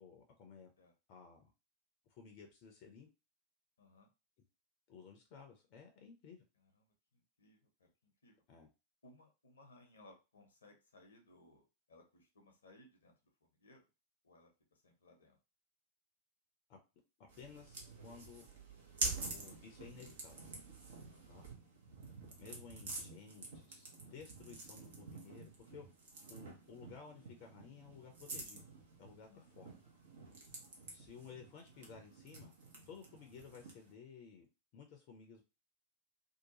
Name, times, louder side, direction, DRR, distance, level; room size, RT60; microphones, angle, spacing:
voice 1, 0.0-0.7 1.1-1.5 2.1-3.1 4.9-6.4 8.5-8.7 16.7-16.8 17.2-18.5 19.3-20.4 21.3-21.4 22.4-25.8 26.3-28.6 29.0-29.3 29.6-29.7 30.9-32.5 32.9-34.5 34.7-35.4, left 6 dB, 45° left, 3 dB, 0.6 m, -55 dB
voice 2, 3.8-4.1 6.6-8.4 9.0-13.1 13.4-13.9 14.2-15.4 21.1-21.4 29.3-29.5, left 2 dB, 70° left, 3 dB, 0.8 m, -64 dB
sound 1, 17.3-33.9, right 3 dB, 60° right, 0.9 m, -48 dB
2.8 x 2.3 x 2.8 m, 0.28 s
figure-of-eight pair, 90°, 0 cm